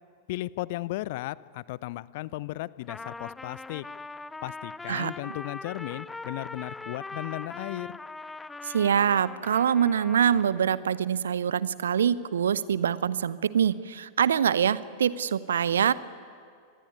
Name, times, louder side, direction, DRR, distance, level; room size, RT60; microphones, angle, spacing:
voice 1, 0.3-3.8 4.4-8.0, left 18 dB, 50° left, 20 dB, 0.6 m, -35 dB
Trumpet, 2.8-10.7, left 3 dB, 10° left, 0.6 m, -41 dB
voice 2, 8.6-15.9, right 8 dB, 65° right, 17 dB, 0.8 m, -24 dB
26.0 x 20.5 x 9.7 m, 2.1 s
figure-of-eight pair, 90°, 0 cm